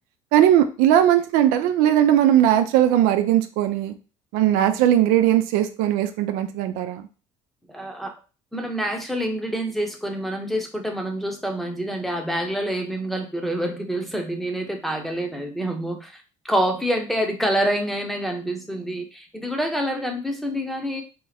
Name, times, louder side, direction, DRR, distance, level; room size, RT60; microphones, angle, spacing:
voice 1, 0.3-3.9 4.3-7.0, right 11 dB, 85° right, 8 dB, 0.5 m, -19 dB
voice 2, 7.7-8.1 8.5-21.0, equal, ahead, 3 dB, 0.8 m, -27 dB
2.9 x 2.4 x 4.1 m, 0.33 s
cardioid pair, 95°, 14 cm